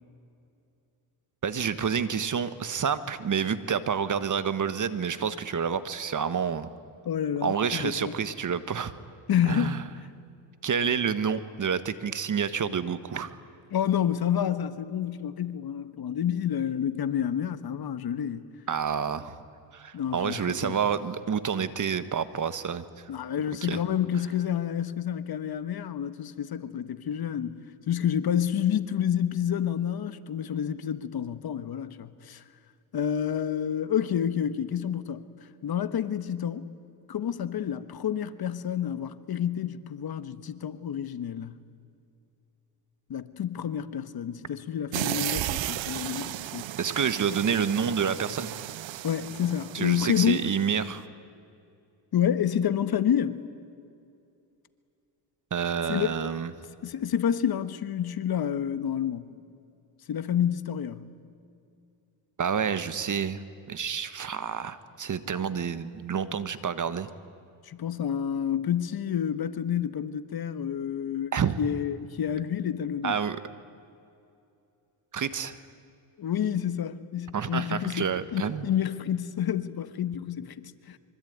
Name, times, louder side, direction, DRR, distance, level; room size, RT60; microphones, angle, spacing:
voice 1, 1.4-6.7 7.4-8.9 9.4-9.8 10.6-13.4 18.7-19.4 19.7-22.8 23.6-23.8 46.8-48.5 49.7-51.0 55.5-56.5 62.4-67.1 71.3-71.6 73.0-73.4 75.1-75.6 77.3-78.7, right 7 dB, 40° right, 1.5 m, -28 dB
voice 2, 7.0-8.1 9.3-9.8 13.7-18.4 19.9-20.8 23.1-32.4 32.9-35.2 35.6-36.7 37.1-41.5 43.1-46.7 49.0-50.4 52.1-53.4 55.9-56.1 56.8-59.2 60.1-61.0 67.6-73.1 76.2-81.0, left 9 dB, 50° left, 1.4 m, -29 dB
sound 1, 44.9-50.8, right 14 dB, 65° right, 1.0 m, -34 dB
25.5 x 24.5 x 9.5 m
cardioid pair, 95°, 49 cm